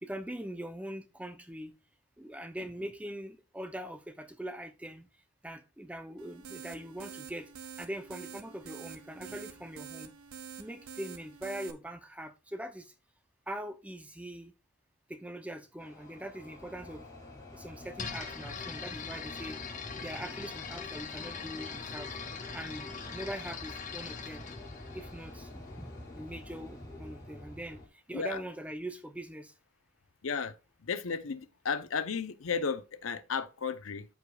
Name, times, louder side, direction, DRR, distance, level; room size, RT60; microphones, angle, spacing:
voice 1, 0.0-1.7 2.2-5.1 5.4-7.5 7.8-10.1 10.6-12.9 13.5-14.5 15.1-17.0 17.5-19.6 20.0-22.1 22.5-24.4 24.9-25.9 26.2-27.8 28.1-29.5, right 1 dB, 5° right, 0.5 m, -42 dB
sound 1, 6.2-11.7, right 7 dB, 90° right, 0.8 m, -47 dB
sound 2, 15.8-27.9, left 2 dB, 15° left, 2.5 m, -47 dB
sound 3, 18.0-25.8, left 5 dB, 35° left, 1.3 m, -42 dB
voice 2, 30.2-34.1, left 5 dB, 75° left, 0.6 m, -34 dB
13.5 x 4.9 x 2.3 m
head